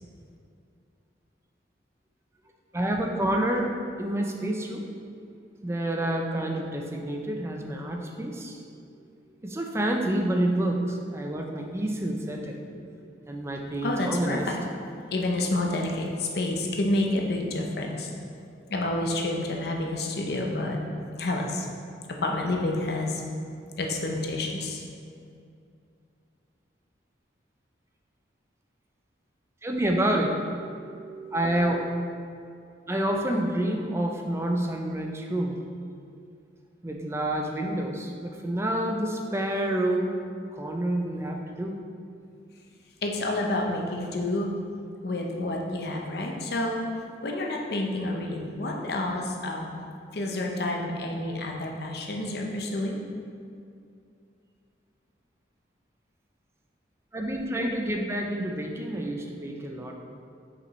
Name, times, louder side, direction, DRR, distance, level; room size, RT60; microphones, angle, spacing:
voice 1, 2.7-4.8 5.6-8.6 9.4-12.9 13.3-14.5 29.6-30.3 30.6-32.1 32.9-35.6 36.8-40.1 40.5-41.7 57.1-60.0, right 1 dB, 15° right, 1 dB, 0.5 m, -28 dB
voice 2, 13.8-14.6 15.1-18.1 18.7-20.8 21.2-21.7 22.1-23.2 23.8-24.8 43.0-44.5 45.0-46.8 47.2-49.7 50.1-53.0, left 2 dB, 60° left, 0 dB, 0.7 m, -29 dB
6.1 x 5.1 x 3.1 m, 2.4 s
head